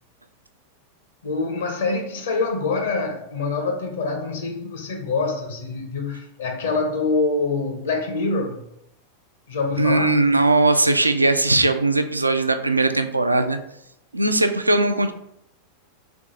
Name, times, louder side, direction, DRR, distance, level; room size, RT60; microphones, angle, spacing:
voice 1, 1.2-8.6 9.5-10.1, left 3 dB, 65° left, 0.6 m, -25 dB
voice 2, 9.8-13.6 14.1-15.1, right 2 dB, 85° right, 0.3 m, -19 dB
3.5 x 3.4 x 3.9 m
figure-of-eight pair, 90°, 0 cm